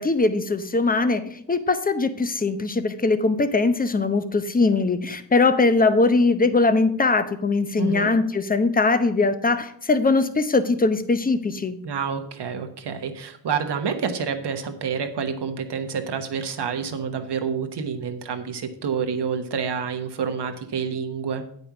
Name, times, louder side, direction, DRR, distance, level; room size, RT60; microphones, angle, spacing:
voice 1, 0.0-11.8, left 3 dB, 20° left, 11 dB, 0.8 m, -21 dB
voice 2, 7.8-8.1 11.8-21.4, right 6 dB, 60° right, 7 dB, 1.3 m, -28 dB
8.5 x 5.4 x 6.0 m, 0.67 s
cardioid pair, 70°, 45 cm